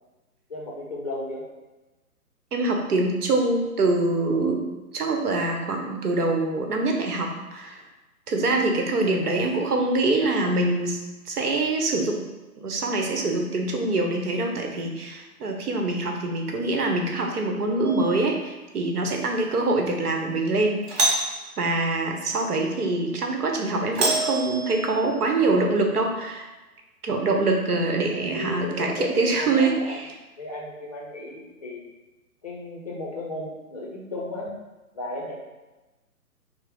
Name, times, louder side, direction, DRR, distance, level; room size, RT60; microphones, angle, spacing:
voice 1, 0.5-1.5 9.1-9.5 28.1-30.0 30.4-31.8 32.4-34.5 34.9-35.4, left 2 dB, 25° left, -3 dB, 0.5 m, -35 dB
voice 2, 2.5-4.7 4.9-7.8 8.3-11.0 11.3-12.2 12.6-21.1 21.6-26.5 27.0-30.0, right 2 dB, 75° right, 2 dB, 1.0 m, -24 dB
Doorbell, 17.8-18.3 20.8-21.5 23.9-25.1, right 2 dB, 45° right, 1.0 m, -26 dB
5.4 x 2.0 x 3.5 m, 1.1 s
hypercardioid pair, 145°, 45 cm